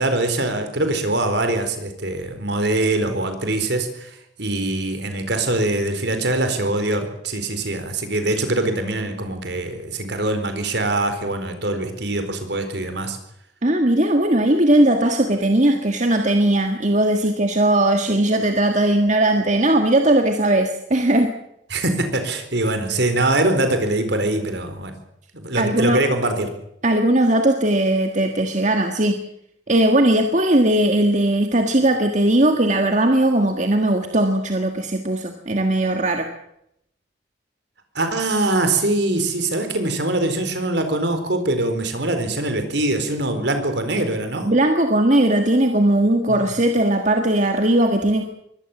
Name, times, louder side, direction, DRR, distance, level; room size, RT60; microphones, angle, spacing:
voice 1, 0.0-13.2 21.7-24.9 25.3-26.5 37.9-44.5 46.3-46.4, right 2 dB, 60° right, 8 dB, 4.4 m, -23 dB
voice 2, 13.6-21.3 25.6-26.0 26.8-29.2 29.7-36.3 44.5-48.2, right 1 dB, 40° right, 5 dB, 1.7 m, -18 dB
23.5 x 18.0 x 7.3 m, 0.79 s
head